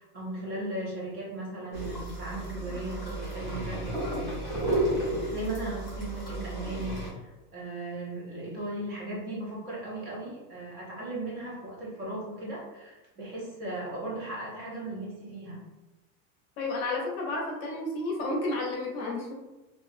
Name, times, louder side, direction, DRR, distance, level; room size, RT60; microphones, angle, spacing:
voice 1, 0.0-4.4 5.3-15.6, right 1 dB, 35° right, -5 dB, 0.9 m, -37 dB
sound 1, 1.7-7.1, right 1 dB, 10° right, 1.2 m, -32 dB
voice 2, 16.6-19.3, left 2 dB, 50° left, -1 dB, 0.6 m, -31 dB
2.9 x 2.5 x 2.4 m, 1.0 s
cardioid pair, 180°, 40 cm